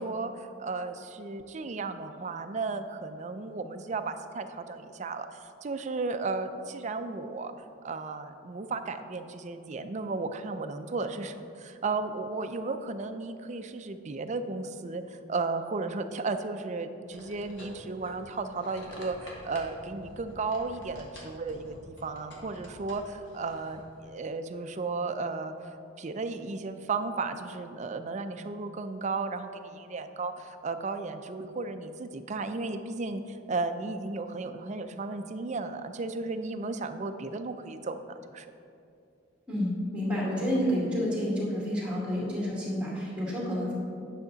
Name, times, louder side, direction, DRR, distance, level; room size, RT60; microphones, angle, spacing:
voice 1, 0.0-7.5 7.8-15.0 15.3-25.5 26.0-38.0 38.3-38.5, right 3 dB, 35° right, 8 dB, 0.4 m, -34 dB
sound 1, 17.1-24.1, equal, 65° left, 1.6 m, -48 dB
voice 2, 39.5-43.7, equal, 5° right, -5 dB, 2.2 m, -29 dB
9.7 x 6.5 x 3.9 m, 2.6 s
head